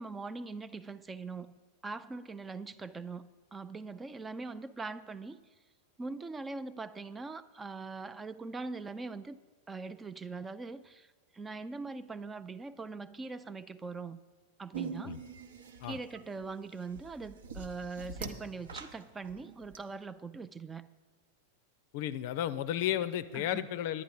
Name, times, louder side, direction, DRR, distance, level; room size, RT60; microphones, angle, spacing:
voice 1, 0.0-1.5 1.8-5.4 6.0-9.4 9.7-11.1 11.3-14.2 14.6-15.2 15.9-20.9 23.3-23.7, right 4 dB, 15° right, 14 dB, 0.4 m, -42 dB
sound 1, 14.7-19.8, right 5 dB, 65° right, 0.8 m, -44 dB
voice 2, 21.9-24.0, left 11 dB, 50° left, 14 dB, 0.5 m, -33 dB
10.5 x 9.8 x 5.4 m, 1.4 s
figure-of-eight pair, 90°, 0 cm